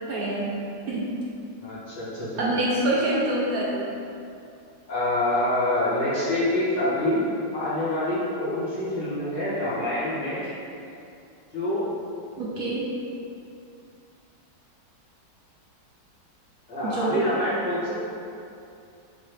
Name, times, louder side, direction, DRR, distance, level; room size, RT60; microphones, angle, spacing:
voice 1, 0.1-0.5 0.9-1.1 2.4-3.8 12.4-12.8 16.8-17.2, right 1 dB, 65° right, -5 dB, 0.9 m, -26 dB
voice 2, 1.6-2.4 4.9-7.3 7.5-10.4 11.5-11.8 16.7-17.9, left 1 dB, 80° left, -10 dB, 2.3 m, -26 dB
6.7 x 2.4 x 3.1 m, 2.6 s
omnidirectional pair, 1.9 m